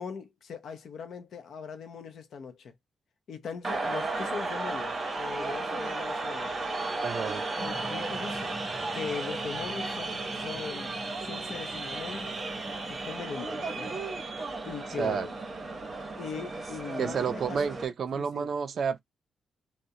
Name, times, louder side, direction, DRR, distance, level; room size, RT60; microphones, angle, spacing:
voice 1, 0.0-2.7 3.3-6.6 7.6-8.5 8.9-10.9 11.2-12.4 12.9-13.9 14.6-15.3 16.2-17.6 18.1-18.5, left 6 dB, 60° left, 0.5 m, -40 dB
sound 1, 3.6-17.8, right 3 dB, 30° right, 0.8 m, -34 dB
voice 2, 7.0-7.4 15.0-15.3 17.0-19.0, right 6 dB, 50° right, 0.3 m, -30 dB
sound 2, 7.6-13.2, left 1 dB, ahead, 0.6 m, -44 dB
2.3 x 2.0 x 2.7 m
wide cardioid pair, 155°, 0 cm